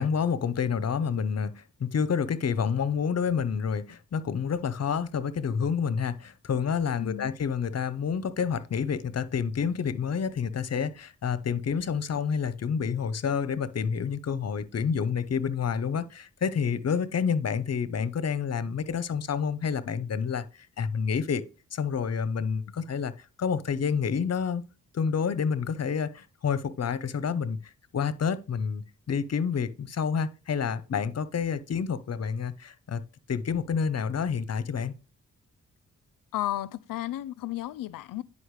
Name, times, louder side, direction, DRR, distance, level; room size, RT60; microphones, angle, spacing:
voice 1, 0.0-21.4 21.7-24.6 24.9-33.0 33.3-34.9, left 6 dB, 50° left, 0.8 m, -29 dB
voice 2, 7.0-7.3 36.3-38.2, left 15 dB, 90° left, 0.5 m, -33 dB
9.9 x 5.3 x 3.2 m
cardioid pair, 70°, 32 cm